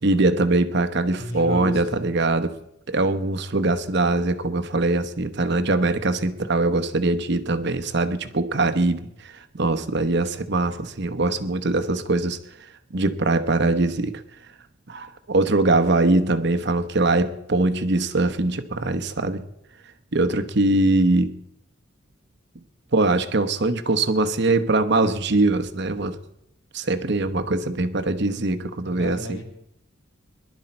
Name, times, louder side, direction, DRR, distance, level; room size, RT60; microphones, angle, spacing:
voice 1, 0.0-2.5 2.9-12.4 12.9-14.2 14.9-19.4 20.1-21.3 22.9-26.2 26.7-29.4, right 2 dB, 55° right, 9 dB, 0.9 m, -22 dB
voice 2, 1.2-1.8 29.0-29.4, equal, 75° left, 1 dB, 3.8 m, -31 dB
22.0 x 11.5 x 4.4 m, 0.80 s
head